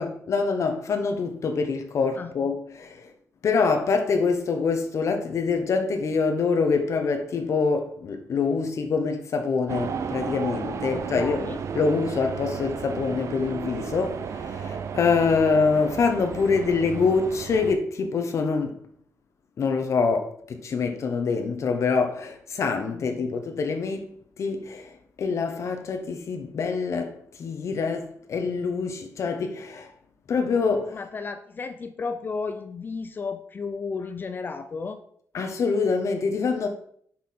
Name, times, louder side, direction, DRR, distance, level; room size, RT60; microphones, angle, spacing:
voice 1, 0.0-3.1 3.4-18.8 19.6-29.9 30.3-31.1 35.3-36.7, left 4 dB, 55° left, 0.8 m, -25 dB
sound 1, 9.7-17.8, right 6 dB, 55° right, 0.5 m, -33 dB
voice 2, 10.9-11.6 30.9-35.0, left 4 dB, 35° left, 0.5 m, -33 dB
6.3 x 5.6 x 4.2 m
wide cardioid pair, 140°, 6 cm